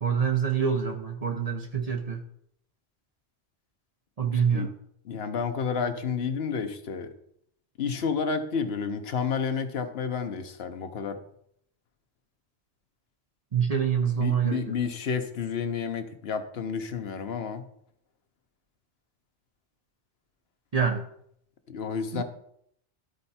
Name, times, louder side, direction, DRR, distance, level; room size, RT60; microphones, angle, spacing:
voice 1, 0.0-2.2 4.2-4.7 13.5-14.7 20.7-21.1 22.1-22.2, right 7 dB, 40° right, 3 dB, 0.8 m, -26 dB
voice 2, 4.3-4.7 5.0-7.1 7.8-11.2 14.2-17.6 21.7-22.2, left 6 dB, 70° left, 8 dB, 1.1 m, -30 dB
13.0 x 4.4 x 4.2 m, 0.70 s
omnidirectional pair, 1.1 m